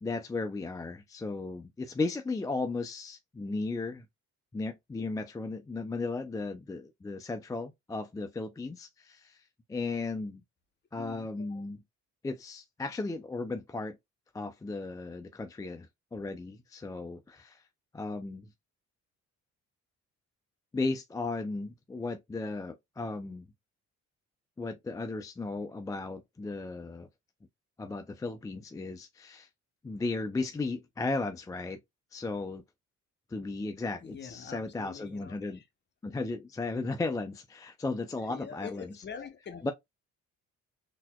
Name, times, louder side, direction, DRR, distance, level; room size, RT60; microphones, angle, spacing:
voice 1, 0.0-4.1 4.5-9.4 9.7-10.4 10.9-11.8 12.2-14.0 14.3-15.9 16.1-17.6 17.9-18.5 20.7-23.4 24.6-27.1 27.8-29.5 29.8-31.8 32.1-32.6 33.3-35.6 36.0-38.9 39.6-39.7, left 3 dB, 10° left, 0.3 m, -35 dB
voice 2, 11.0-11.6 34.0-35.6 38.3-39.7, left 7 dB, 35° left, 0.7 m, -45 dB
4.0 x 2.7 x 2.2 m
cardioid pair, 90°, 30 cm